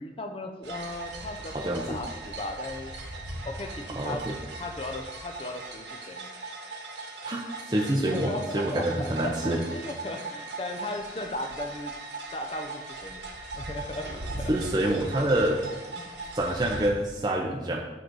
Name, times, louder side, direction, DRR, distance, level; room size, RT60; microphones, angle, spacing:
voice 1, 0.0-2.9 3.4-4.2 4.6-6.3 8.1-12.0 12.3-13.2 13.5-14.1 14.4-14.5 16.0-16.1, left 2 dB, 30° left, 5 dB, 0.5 m, -37 dB
sound 1, 0.6-16.9, right 2 dB, 80° right, 1.7 m, -39 dB
voice 2, 1.5-2.0 4.0-4.4 7.2-9.6 14.5-15.6 16.3-17.8, right 1 dB, 20° right, -1 dB, 0.6 m, -27 dB
7.7 x 4.0 x 6.1 m, 1.1 s
head